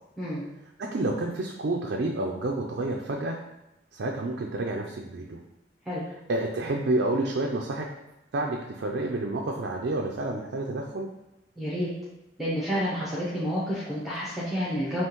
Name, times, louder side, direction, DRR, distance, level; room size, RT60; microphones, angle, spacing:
voice 1, 0.8-3.4 3.9-5.4 6.3-7.9 8.3-11.1, right 2 dB, 60° right, 0 dB, 0.4 m, -29 dB
voice 2, 11.6-11.9 12.4-15.0, equal, ahead, -8 dB, 0.8 m, -29 dB
5.5 x 3.0 x 2.9 m, 0.93 s
head